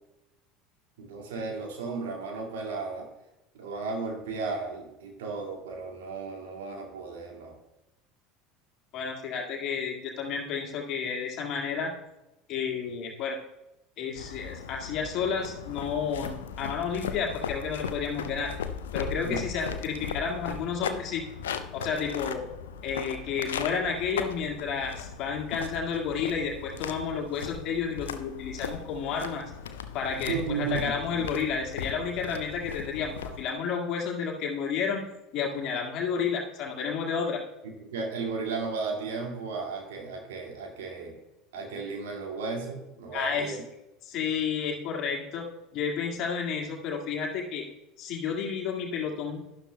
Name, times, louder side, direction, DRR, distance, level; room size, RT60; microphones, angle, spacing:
voice 1, 1.0-3.1 3.5-7.6 19.2-19.4 30.1-31.3 37.6-41.2 41.5-43.6, right 4 dB, 65° right, 1 dB, 2.0 m, -34 dB
voice 2, 8.9-11.9 12.5-13.4 14.0-18.5 18.9-21.2 21.7-22.4 22.8-29.4 29.9-35.0 35.3-37.4 43.1-43.6 44.0-45.5 45.7-47.6 48.0-49.4, left 6 dB, 45° left, 0 dB, 1.9 m, -31 dB
sound 1, 14.2-33.4, left 7 dB, 70° left, 0.5 m, -38 dB
12.0 x 11.5 x 2.3 m, 0.95 s
figure-of-eight pair, 70°, 0 cm